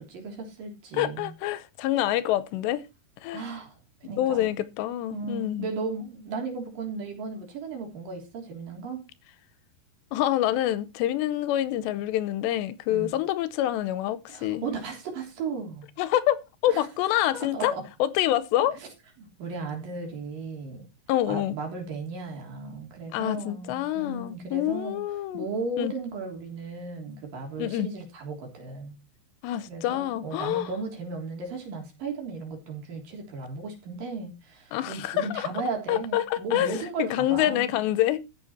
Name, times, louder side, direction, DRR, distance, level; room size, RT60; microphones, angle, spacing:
voice 1, 0.0-1.3 3.3-3.7 4.0-4.7 5.1-9.0 12.9-13.1 14.3-15.9 16.7-16.9 17.3-17.8 18.7-18.9 19.2-20.8 21.3-25.0 25.3-29.0 29.7-37.8, right 3 dB, 55° right, 5.0 m, -35 dB
voice 2, 0.9-2.8 3.2-3.4 4.2-5.7 10.1-14.7 16.0-17.7 18.0-18.8 21.1-21.5 23.1-25.5 25.8-25.9 27.6-27.9 29.4-30.7 34.7-35.5 35.9-38.2, left 13 dB, 90° left, 3.0 m, -26 dB
14.0 x 7.6 x 4.3 m
omnidirectional pair, 5.0 m